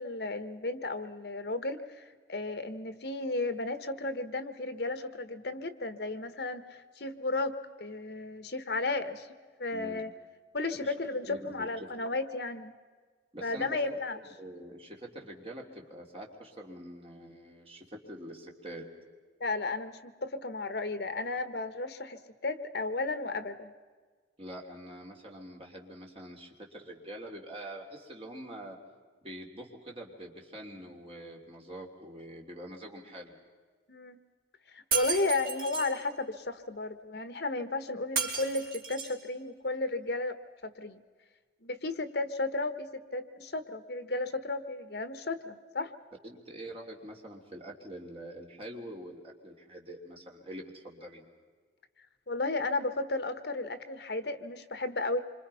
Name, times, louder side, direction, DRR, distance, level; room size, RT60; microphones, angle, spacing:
voice 1, 0.0-9.3 9.6-10.1 10.5-12.7 13.4-14.2 19.4-23.7 33.9-34.2 34.7-40.3 40.6-41.0 41.6-45.9 52.3-55.2, left 2 dB, 65° left, 12 dB, 1.2 m, -34 dB
voice 2, 9.7-10.0 10.8-10.9 11.3-11.9 13.3-13.8 14.4-18.9 24.4-28.8 29.2-33.4 46.2-51.3, right 1 dB, 30° right, 0 dB, 3.2 m, -45 dB
Shatter, 34.9-35.9 38.2-39.2, right 6 dB, 55° right, 4.7 m, -33 dB
27.0 x 25.5 x 5.7 m, 1.5 s
head